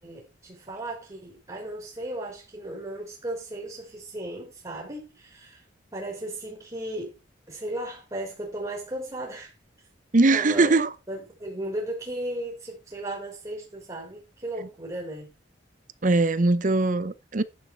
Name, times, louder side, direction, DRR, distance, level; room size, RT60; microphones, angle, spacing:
voice 1, 0.0-5.6 5.9-7.2 7.5-9.5 10.2-10.7 11.1-15.3, right 1 dB, 20° right, 3.8 m, -35 dB
voice 2, 10.1-10.9 16.0-17.4, right 3 dB, 40° right, 0.7 m, -21 dB
10.5 x 7.2 x 4.6 m
head